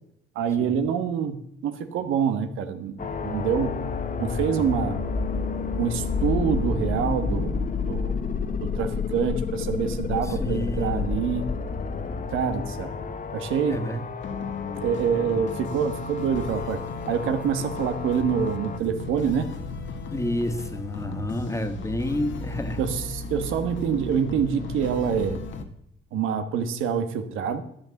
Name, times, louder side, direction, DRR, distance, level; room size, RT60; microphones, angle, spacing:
voice 1, 0.3-3.8 4.2-5.0 5.8-7.5 7.9-8.2 8.6-11.4 12.3-12.9 13.3-13.9 14.7-16.8 17.1-19.5 22.8-25.4 26.1-27.6, right 7 dB, 90° right, 8 dB, 1.4 m, -26 dB
sound 1, 3.0-18.8, left 5 dB, 40° left, 1.2 m, -30 dB
voice 2, 10.2-11.0 13.7-14.0 20.1-22.8, left 1 dB, 15° left, 8 dB, 1.6 m, -29 dB
sound 2, 14.2-25.7, left 3 dB, 70° left, 1.6 m, -36 dB
13.0 x 8.0 x 7.1 m, 0.75 s
cardioid pair, 90°, 20 cm